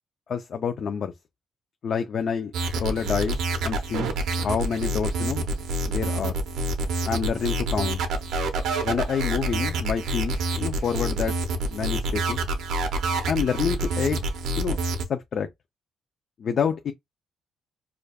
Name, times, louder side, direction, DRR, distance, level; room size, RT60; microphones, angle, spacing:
voice 1, 0.3-1.1 1.8-4.1 4.4-5.4 5.9-6.4 7.1-8.0 8.8-11.3 11.7-12.4 13.3-14.3 14.6-14.8 15.1-15.5 16.4-16.9, left 6 dB, 55° left, 0.4 m, -28 dB
sound 1, 2.5-15.0, right 2 dB, 80° right, 0.7 m, -27 dB
4.9 x 2.2 x 2.3 m
cardioid pair, 90°, 0 cm